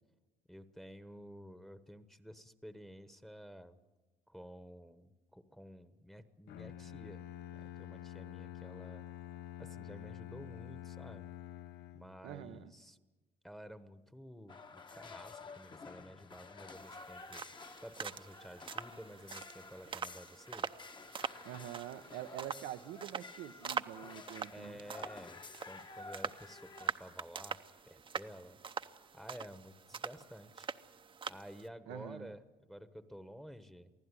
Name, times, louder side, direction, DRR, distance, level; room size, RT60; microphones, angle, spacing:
voice 1, 0.5-3.8 4.3-7.2 7.5-9.0 9.6-11.3 11.9-13.0 13.4-17.4 17.8-20.7 24.5-28.6 29.1-30.7 31.3-32.4 32.7-33.9, equal, ahead, 11 dB, 1.1 m, -52 dB
Bowed string instrument, 6.5-12.3, left 12 dB, 80° left, 0.7 m, -48 dB
voice 2, 12.2-12.7 21.4-24.8 31.9-32.3, right 12 dB, 90° right, 8 dB, 0.9 m, -46 dB
sound 1, 14.5-26.9, left 4 dB, 30° left, 1.1 m, -52 dB
sound 2, 16.8-31.7, right 6 dB, 30° right, 0.8 m, -44 dB
23.5 x 15.5 x 9.8 m, 1.2 s
cardioid pair, 110°, 17 cm